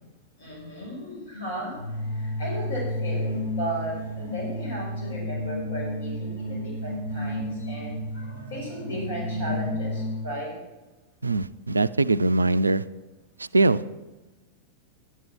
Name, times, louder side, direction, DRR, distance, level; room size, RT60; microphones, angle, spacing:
voice 1, 0.4-10.5, right 1 dB, 65° left, -4 dB, 5.6 m, -35 dB
sound 1, 1.7-10.3, left 1 dB, 85° left, 5.6 m, -31 dB
voice 2, 11.2-12.8 13.4-13.8, right 2 dB, 80° right, 15 dB, 0.3 m, -22 dB
11.5 x 11.0 x 5.9 m, 1.1 s
figure-of-eight pair, 90°, 0 cm